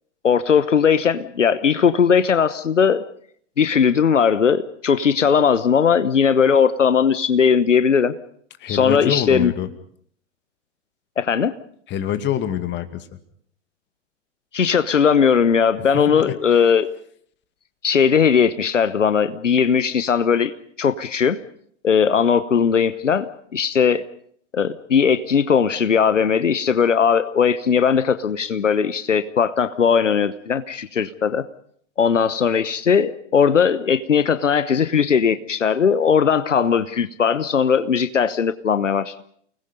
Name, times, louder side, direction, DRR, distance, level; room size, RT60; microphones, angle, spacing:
voice 1, 0.2-3.0 3.6-8.1 8.7-9.5 11.2-11.5 14.5-16.9 17.8-20.5 20.8-21.4 21.8-24.0 24.5-31.5 32.0-39.1, left 6 dB, 85° left, 13 dB, 1.0 m, -18 dB
voice 2, 8.6-9.7 11.9-13.2 15.9-16.3, left 10 dB, 30° left, 10 dB, 2.3 m, -25 dB
29.5 x 20.0 x 5.4 m, 0.63 s
figure-of-eight pair, 100°, 36 cm